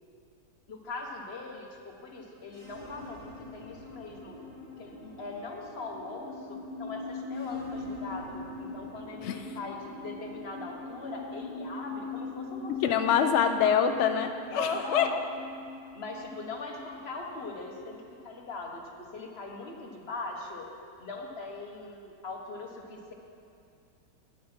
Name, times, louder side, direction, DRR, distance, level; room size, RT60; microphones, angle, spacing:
voice 1, 0.7-3.2 3.5-4.4 4.8-13.4 14.5-15.2 15.9-18.8 19.1-20.7 21.0-23.1, left 3 dB, 40° left, 1 dB, 1.3 m, -40 dB
sound 1, 2.4-17.9, left 3 dB, 85° right, 4.1 m, -41 dB
voice 2, 12.7-15.1, left 8 dB, 80° left, 7 dB, 0.6 m, -25 dB
10.0 x 9.6 x 6.1 m, 2.5 s
omnidirectional pair, 1.8 m